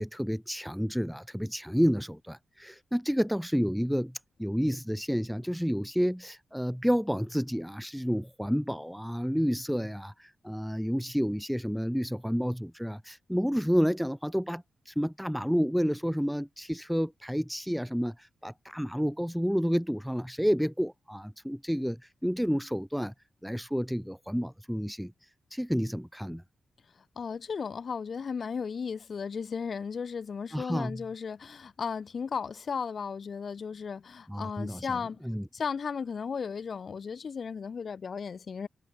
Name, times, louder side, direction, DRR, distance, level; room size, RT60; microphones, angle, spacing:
voice 1, 0.0-23.1 23.4-25.1 25.5-26.4 30.5-31.0 34.3-35.4, equal, ahead, 0.3 m, -30 dB
voice 2, 27.2-35.2 35.5-38.7, left 6 dB, 40° left, 0.8 m, -35 dB
wide cardioid pair, 175°, 0 cm